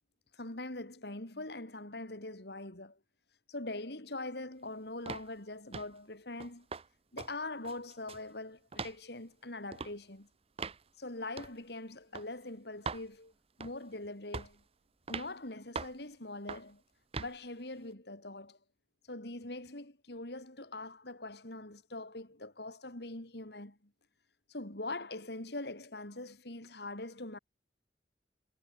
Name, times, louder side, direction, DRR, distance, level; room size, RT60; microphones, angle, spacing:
voice 1, 0.3-3.0 3.5-6.7 7.1-10.3 11.0-13.3 13.6-14.6 15.1-16.8 17.2-18.6 19.1-23.8 24.5-27.4, left 2 dB, 65° left, 3.7 m, -43 dB
sound 1, 5.1-5.3 5.7-6.0 6.4-6.9 7.2-7.3 7.6-8.3 8.7-9.0 9.7-9.9 10.6-10.8 11.4-11.6 12.1-12.3 12.8-13.1 13.6-13.9 14.3-14.6 15.1-15.3 15.7-16.0 16.5-16.7 17.1-17.3, right 4 dB, 35° right, 0.8 m, -41 dB
head